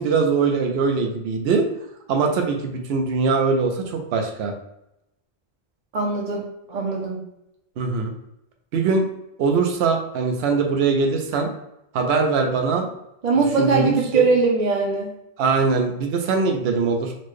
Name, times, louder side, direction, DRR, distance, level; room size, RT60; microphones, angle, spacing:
voice 1, 0.0-1.7 2.1-4.5 7.8-8.1 8.7-9.0 9.4-11.5 11.9-12.9 13.6-14.2 15.4-17.1, right 4 dB, 75° right, 3 dB, 0.8 m, -21 dB
voice 2, 5.9-7.2 13.2-15.1, right 4 dB, 50° right, -1 dB, 0.6 m, -21 dB
4.2 x 2.1 x 3.1 m, 0.84 s
omnidirectional pair, 1.1 m